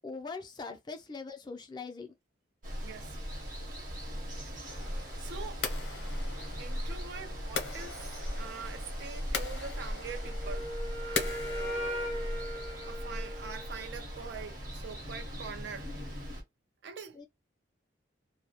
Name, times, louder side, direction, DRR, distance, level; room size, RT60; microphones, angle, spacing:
voice 1, 0.0-2.1 17.1-17.3, left 4 dB, 20° left, 0.3 m, -42 dB
Water, 2.6-16.4, equal, 45° right, 0.8 m, -39 dB
voice 2, 2.8-3.2 4.8-5.6 6.6-10.7 11.0-12.2 12.9-15.9 16.8-17.2, right 5 dB, 60° right, 0.4 m, -44 dB
sound 1, 4.6-12.9, left 5 dB, 60° left, 0.6 m, -41 dB
Wind instrument woodwind instrument, 10.2-14.0, equal, 90° right, 0.7 m, -39 dB
2.2 x 2.0 x 2.8 m
head